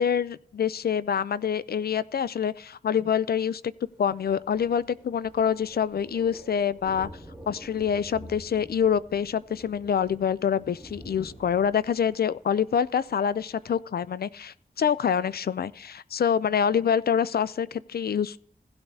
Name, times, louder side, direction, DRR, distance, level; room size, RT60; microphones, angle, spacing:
voice 1, 0.0-3.6 4.0-7.1 7.5-18.4, left 7 dB, 70° left, 0.4 m, -26 dB
Thunder, 3.8-13.8, equal, ahead, 3.3 m, -48 dB
16.0 x 8.7 x 2.7 m
wide cardioid pair, 80°, 16 cm